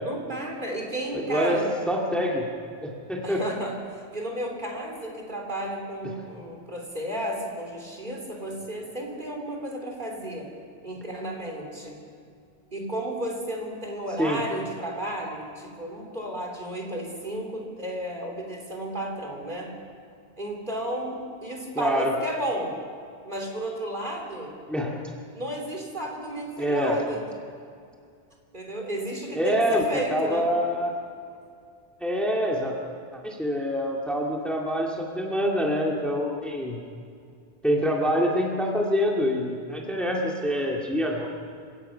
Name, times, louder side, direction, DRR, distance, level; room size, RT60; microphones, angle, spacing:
voice 1, 0.0-1.7 3.2-10.5 10.8-12.0 12.7-19.7 20.4-22.7 23.2-24.6 25.3-27.2 28.5-30.5, right 1 dB, 45° right, 0 dB, 3.6 m, -33 dB
voice 2, 1.1-1.6 1.9-2.4 2.8-3.4 14.2-14.4 21.8-22.1 24.7-25.0 26.6-27.0 29.3-30.9 32.0-32.7 33.1-36.8 37.6-41.3, equal, ahead, -1 dB, 2.1 m, -25 dB
28.5 x 16.5 x 5.7 m, 2.3 s
omnidirectional pair, 1.1 m